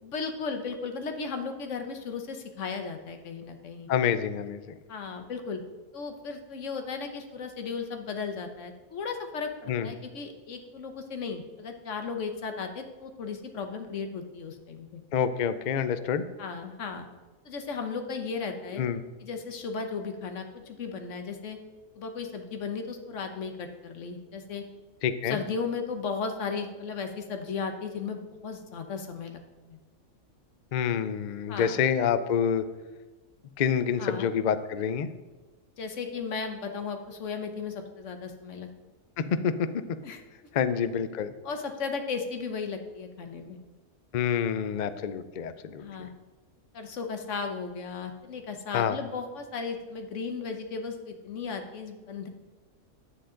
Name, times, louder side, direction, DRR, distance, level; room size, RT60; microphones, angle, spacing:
voice 1, 0.0-3.9 4.9-5.6 5.9-15.0 16.4-17.1 17.4-18.8 19.2-21.6 21.9-24.6 25.2-29.4 29.7-29.8 31.5-31.8 34.0-34.3 35.8-38.7 40.0-40.2 41.4-43.6 45.8-46.1 46.7-52.3, left 5 dB, 60° left, 6 dB, 1.3 m, -35 dB
voice 2, 3.9-4.6 9.7-9.9 15.1-16.2 18.7-19.0 25.0-25.4 30.7-32.7 33.6-35.1 39.2-39.7 40.5-41.3 44.1-45.8 48.7-49.0, left 7 dB, 80° left, 11 dB, 0.4 m, -27 dB
10.0 x 8.2 x 3.8 m, 1.2 s
omnidirectional pair, 1.5 m